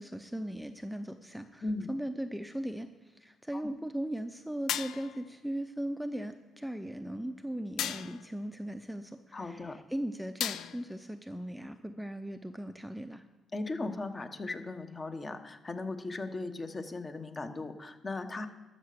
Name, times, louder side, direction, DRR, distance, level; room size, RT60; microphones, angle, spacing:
voice 1, 0.0-13.2, right 1 dB, ahead, 8 dB, 0.6 m, -38 dB
voice 2, 1.6-1.9 3.5-3.6 9.3-9.8 13.5-18.5, left 2 dB, 30° left, 9 dB, 1.1 m, -37 dB
sound 1, 4.7-5.3 7.8-8.3 10.4-11.0, left 10 dB, 80° left, 0.4 m, -35 dB
12.5 x 6.7 x 6.8 m, 1.2 s
cardioid pair, 90°, 0 cm